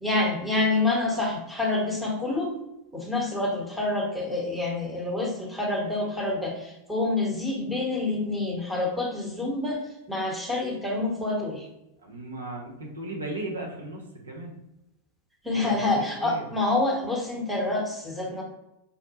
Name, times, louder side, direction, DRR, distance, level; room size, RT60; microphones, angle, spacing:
voice 1, 0.0-2.5 2.9-9.8 10.1-11.7 15.4-18.4, left 2 dB, ahead, -3 dB, 0.9 m, -27 dB
voice 2, 12.0-14.5 15.5-16.5, right 2 dB, 75° right, 0 dB, 0.7 m, -36 dB
5.3 x 2.1 x 2.9 m, 0.88 s
figure-of-eight pair, 90°, 0 cm